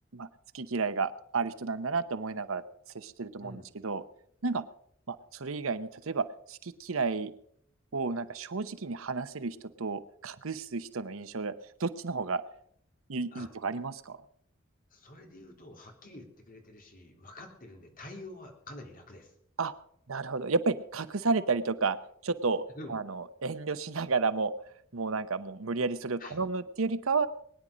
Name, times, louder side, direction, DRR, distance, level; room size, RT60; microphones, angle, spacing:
voice 1, 0.5-2.6 2.9-4.0 4.4-4.6 5.1-7.3 7.9-11.5 11.8-12.4 13.1-14.2 19.6-19.7 20.1-22.0 22.2-22.6 22.9-24.5 24.9-27.3, right 4 dB, 85° right, 13 dB, 0.9 m, -31 dB
voice 2, 14.9-19.3 22.8-23.0 26.2-26.4, left 1 dB, 45° left, 2 dB, 3.2 m, -47 dB
21.5 x 10.0 x 5.1 m, 0.67 s
head